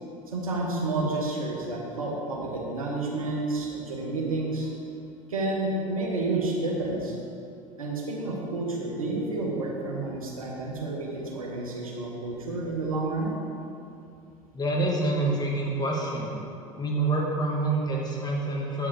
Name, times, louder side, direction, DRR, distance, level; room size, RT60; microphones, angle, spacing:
voice 1, 0.3-4.7 5.3-7.1 7.8-13.3, right 2 dB, 85° right, -2 dB, 1.3 m, -30 dB
voice 2, 14.5-16.3 16.8-18.9, right 2 dB, 25° left, -2 dB, 1.8 m, -27 dB
8.8 x 5.4 x 4.9 m, 2.6 s
hypercardioid pair, 75°, 18 cm